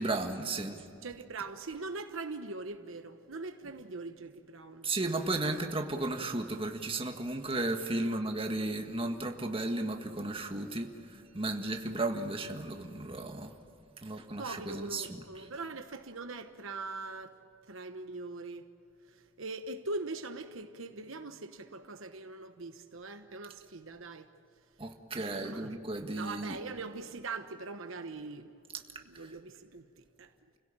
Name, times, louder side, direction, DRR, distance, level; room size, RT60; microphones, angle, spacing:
voice 1, 0.0-0.8 4.8-13.5 14.0-15.2 24.8-26.6, right 2 dB, 25° right, 1.7 m, -34 dB
voice 2, 1.0-5.1 5.4-5.6 6.2-6.3 8.0-8.2 14.1-17.4 17.7-18.7 19.1-24.3 25.1-25.8 26.1-28.5 29.0-30.3, right 3 dB, 70° right, 1.1 m, -42 dB
30.0 x 16.5 x 8.9 m
head